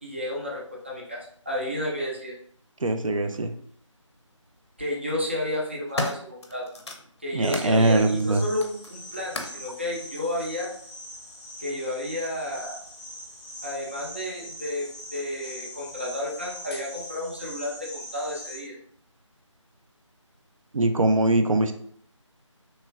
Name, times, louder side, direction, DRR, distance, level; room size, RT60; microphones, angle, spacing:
voice 1, 0.0-2.3 4.8-6.6 7.2-10.7 11.6-12.8 13.6-18.7, left 1 dB, 20° right, -4 dB, 0.4 m, -31 dB
voice 2, 2.8-3.5 7.3-8.5 20.7-21.7, right 2 dB, 85° right, 7 dB, 0.4 m, -22 dB
sound 1, 3.3-3.4 4.5-4.9 5.4-7.7 8.2-9.7 10.5-10.6, left 2 dB, 55° left, 0.5 m, -36 dB
sound 2, 7.4-18.6, left 1 dB, 15° left, 0.7 m, -42 dB
3.0 x 2.3 x 2.5 m, 0.62 s
figure-of-eight pair, 165°, 17 cm